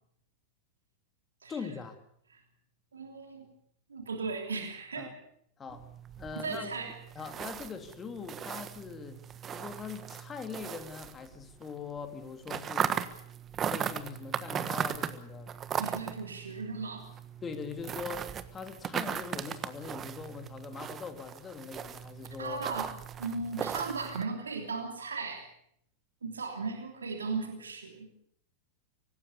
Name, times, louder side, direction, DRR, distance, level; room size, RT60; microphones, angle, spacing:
voice 1, 1.5-2.0 5.0-5.2 5.6-5.8 6.2-6.7 7.1-9.2 9.5-12.9 13.6-15.5 17.4-22.6, left 5 dB, 20° left, 6 dB, 3.1 m, -42 dB
voice 2, 2.9-3.5 3.9-5.1 6.3-6.9 15.8-17.1 22.4-22.9 23.2-25.5 26.2-28.1, right 4 dB, 70° right, 3 dB, 3.1 m, -36 dB
sound 1, 5.7-11.7 12.0-24.2, right 8 dB, 25° right, 1.4 m, -38 dB
25.0 x 18.5 x 7.0 m, 0.69 s
figure-of-eight pair, 90°, 0 cm